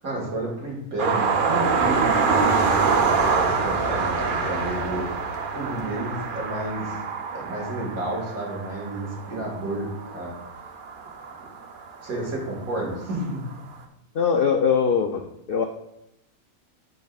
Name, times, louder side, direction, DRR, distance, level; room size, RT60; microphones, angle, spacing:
voice 1, 0.0-7.0 7.3-10.3 12.0-13.4, right 1 dB, 80° right, -2 dB, 2.3 m, -31 dB
sound 1, 1.0-12.0 13.1-13.2 13.5-13.6, right 5 dB, 50° right, 0.6 m, -25 dB
sound 2, 1.1-7.0, left 4 dB, 55° left, 0.9 m, -38 dB
voice 2, 14.1-15.2 15.5-15.7, left 6 dB, 75° left, 4 dB, 0.5 m, -21 dB
10.5 x 4.7 x 2.4 m, 0.84 s
omnidirectional pair, 1.5 m